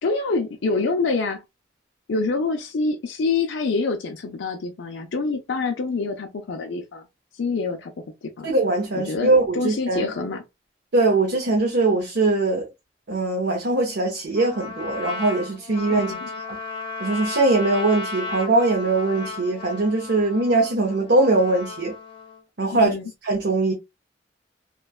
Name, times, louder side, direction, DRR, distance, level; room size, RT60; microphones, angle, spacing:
voice 1, 0.0-1.4 2.1-7.0 7.3-7.9 8.2-8.5 8.9-10.4 15.9-16.3 22.7-23.1, left 3 dB, 80° left, 0.5 m, -26 dB
voice 2, 8.4-10.1 10.9-12.7 13.1-16.1 17.0-21.9 22.6-22.9 23.2-23.7, right 2 dB, 65° right, 0.8 m, -21 dB
Trumpet, 14.3-22.4, left 3 dB, 30° left, 0.7 m, -35 dB
3.2 x 2.2 x 2.2 m
head